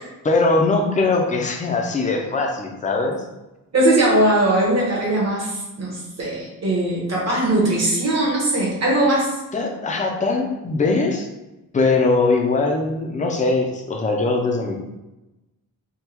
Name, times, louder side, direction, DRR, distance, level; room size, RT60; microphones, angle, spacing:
voice 1, 0.2-3.2 9.5-11.3 11.7-14.8, left 3 dB, 20° left, 1 dB, 0.4 m, -21 dB
voice 2, 3.7-9.3, right 1 dB, 45° right, -4 dB, 1.0 m, -20 dB
3.5 x 2.2 x 2.9 m, 1.0 s
wide cardioid pair, 180°, 36 cm